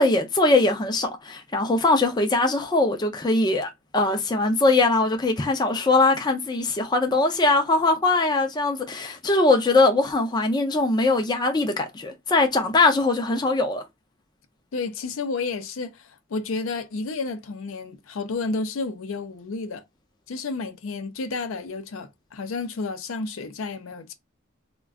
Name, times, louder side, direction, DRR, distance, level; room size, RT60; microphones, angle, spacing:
voice 1, 0.0-13.8, left 2 dB, 20° left, 0.4 m, -21 dB
voice 2, 14.7-19.8 20.3-24.1, left 3 dB, 75° left, 0.5 m, -31 dB
2.3 x 2.2 x 3.5 m
head